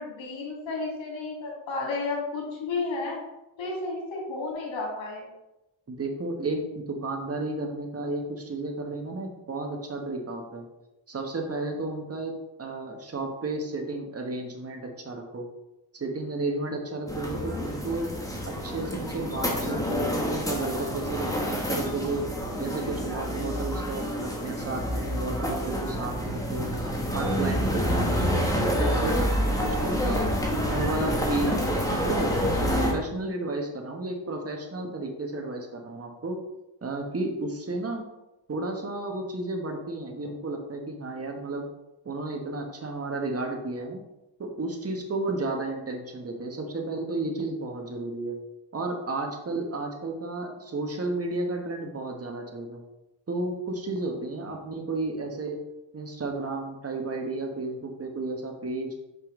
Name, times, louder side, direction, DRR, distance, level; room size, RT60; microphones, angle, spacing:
voice 1, 0.0-3.2 3.6-5.3, left 3 dB, 85° left, -2 dB, 2.4 m, -32 dB
voice 2, 5.9-10.7 11.1-15.5 15.9-18.1 18.4-22.3 22.6-26.7 27.1-29.3 29.6-32.3 32.6-36.4 36.8-38.0 38.5-41.7 42.0-44.0 44.4-48.4 48.7-52.8 53.3-55.6 55.9-58.9, right 2 dB, 30° right, 2 dB, 1.4 m, -32 dB
sound 1, 17.1-32.9, equal, 10° left, 1.5 m, -28 dB
5.4 x 5.3 x 3.8 m, 0.94 s
cardioid pair, 70°, 45 cm